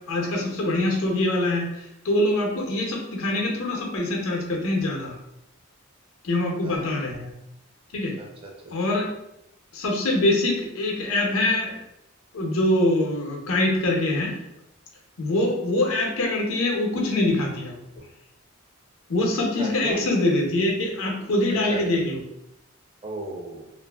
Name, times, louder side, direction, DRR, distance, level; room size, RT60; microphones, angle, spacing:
voice 1, 0.0-5.1 6.2-7.3 7.9-8.1 8.7-9.1 9.7-11.7 12.3-14.4 15.2-17.8 19.1-22.2, left 1 dB, 70° left, 0 dB, 0.6 m, -24 dB
voice 2, 8.2-8.7 15.3-15.5 19.6-20.0 21.7-21.8 23.0-23.7, right 2 dB, 25° right, -1 dB, 0.4 m, -36 dB
2.5 x 2.4 x 2.3 m, 0.83 s
head